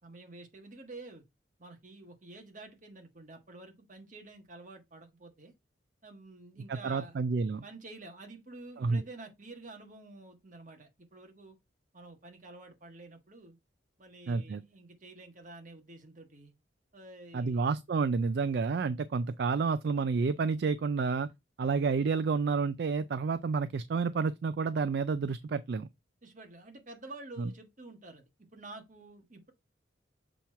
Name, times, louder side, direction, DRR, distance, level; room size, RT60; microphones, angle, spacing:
voice 1, 0.0-1.2 1.6-5.5 6.0-7.1 7.6-11.6 11.9-13.6 14.0-16.5 16.9-17.6 19.3-19.4 26.2-29.5, right 2 dB, 45° right, 1.5 m, -49 dB
voice 2, 6.7-7.6 8.8-9.0 14.3-14.6 17.3-21.3 21.6-25.9 27.4-27.5, right 4 dB, 60° right, 0.3 m, -30 dB
7.0 x 3.0 x 4.6 m
head